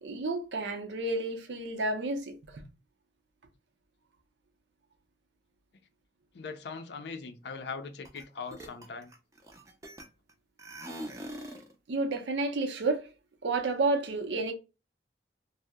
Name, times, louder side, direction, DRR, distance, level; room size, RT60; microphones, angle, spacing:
voice 1, 0.0-2.3 11.9-13.1 13.4-14.5, right 3 dB, 90° right, 0.6 m, -30 dB
voice 2, 6.3-9.1, left 5 dB, 75° left, 0.4 m, -40 dB
sound 1, 8.1-8.2 8.5-10.3 10.6-11.7, right 1 dB, 20° right, 0.4 m, -43 dB
2.7 x 2.0 x 3.4 m
head